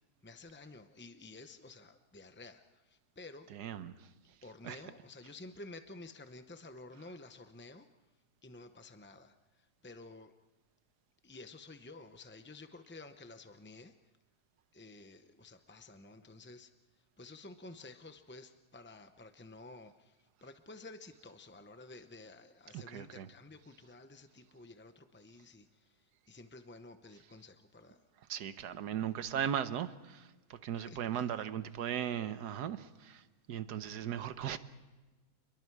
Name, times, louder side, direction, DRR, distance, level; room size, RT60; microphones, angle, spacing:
voice 1, 0.2-3.5 4.4-7.9 8.4-9.3 9.8-10.3 11.2-13.9 14.7-16.7 17.2-20.1 20.4-25.9 26.3-28.0 30.7-31.5, left 2 dB, 15° left, 0.4 m, -52 dB
voice 2, 3.5-4.1 4.6-4.8 22.7-23.3 28.3-34.6, right 9 dB, 90° right, 1.5 m, -38 dB
28.5 x 22.0 x 4.7 m
omnidirectional pair, 1.7 m